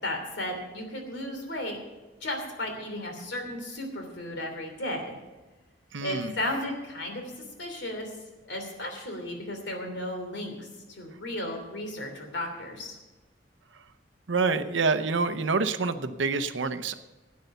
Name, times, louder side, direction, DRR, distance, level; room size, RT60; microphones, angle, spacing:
voice 1, 0.0-1.8 2.2-5.2 6.0-8.1 8.5-13.0, left 1 dB, 70° left, 3 dB, 3.1 m, -34 dB
voice 2, 5.9-6.3 14.3-16.9, right 4 dB, 80° right, 10 dB, 0.7 m, -27 dB
12.0 x 9.5 x 6.8 m, 1.2 s
head